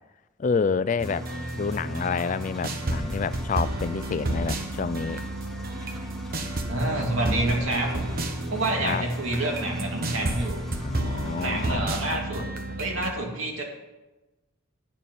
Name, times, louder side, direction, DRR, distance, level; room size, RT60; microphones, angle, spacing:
voice 1, 0.4-1.3 1.6-5.2 8.8-9.0 10.8-12.8, left 5 dB, 35° left, 16 dB, 0.3 m, -29 dB
Engine, 1.0-11.8, equal, ahead, 1.3 m, -45 dB
sound 1, 1.0-13.1, right 1 dB, 45° right, 1.2 m, -31 dB
voice 2, 6.7-8.0 8.5-10.6 11.4-12.5 12.8-13.6, right 2 dB, 75° right, 0 dB, 2.8 m, -28 dB
9.9 x 6.8 x 8.9 m, 1.1 s
head